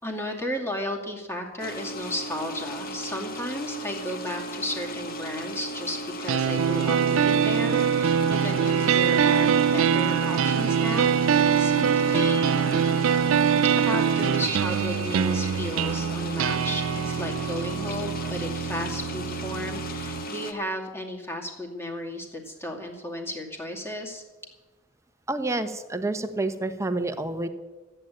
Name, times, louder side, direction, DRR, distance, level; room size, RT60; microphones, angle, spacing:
voice 1, 0.0-12.8 13.8-24.2, left 1 dB, 15° left, 0 dB, 2.4 m, -34 dB
sound 1, 1.6-20.5, equal, 50° left, 1.3 m, -36 dB
sound 2, 6.3-20.3, right 7 dB, 85° right, 0.4 m, -24 dB
voice 2, 25.3-27.5, right 2 dB, 15° right, 8 dB, 1.0 m, -28 dB
14.0 x 9.0 x 8.9 m, 1.2 s
head